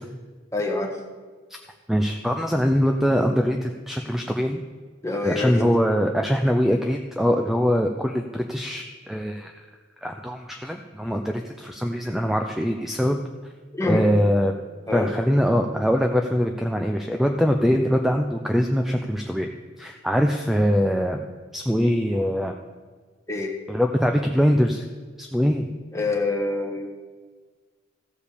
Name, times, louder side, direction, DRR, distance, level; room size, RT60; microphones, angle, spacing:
voice 1, 0.5-1.0 5.0-5.7 13.7-14.1 14.9-15.2 23.3-23.5 25.9-26.9, left 2 dB, 15° left, 1 dB, 1.2 m, -26 dB
voice 2, 1.9-4.6 5.2-9.5 10.0-13.2 13.8-14.5 14.9-19.5 19.8-21.2 21.5-22.6 23.7-24.8 25.2-25.7, equal, ahead, 3 dB, 0.5 m, -22 dB
15.0 x 5.1 x 6.8 m, 1.5 s
head